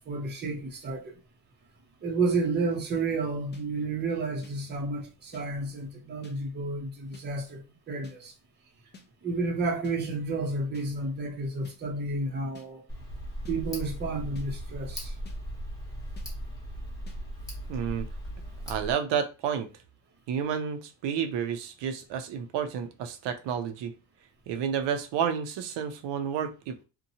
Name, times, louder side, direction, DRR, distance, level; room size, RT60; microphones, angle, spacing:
voice 1, 0.1-1.1 2.0-8.3 9.2-12.8 13.5-15.1, right 3 dB, 25° right, 0.6 m, -31 dB
sound 1, 3.5-3.6 4.4-4.5 5.3-5.4 6.2-6.4 7.1-7.3 8.0-8.2 8.9-9.1 9.8-10.0 10.7-10.9 11.6-11.8 12.5-12.7 13.4-13.6 14.3-14.5 15.2-15.4 16.2-16.3 17.1-17.2, left 4 dB, 25° left, 0.4 m, -50 dB
Tick, 12.9-18.9, equal, 10° left, 0.9 m, -38 dB
voice 2, 17.7-18.1 18.7-19.7 20.3-23.9 24.5-26.8, right 7 dB, 65° right, 0.6 m, -30 dB
2.8 x 2.2 x 2.7 m
cardioid pair, 135°, 45 cm